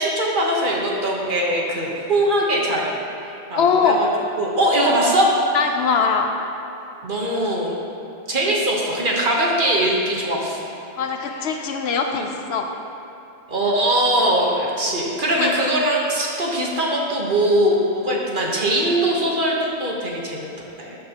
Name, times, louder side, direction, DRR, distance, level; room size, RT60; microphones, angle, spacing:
voice 1, 0.0-2.9 3.2-4.1 4.4-5.3 7.0-7.7 8.3-10.7 13.5-21.0, right 1 dB, 45° right, -2 dB, 1.2 m, -21 dB
voice 2, 3.6-4.1 5.5-6.3 11.0-12.7 15.4-15.5, left 5 dB, 65° left, 4 dB, 0.8 m, -21 dB
12.5 x 6.7 x 2.9 m, 2.8 s
omnidirectional pair, 1.3 m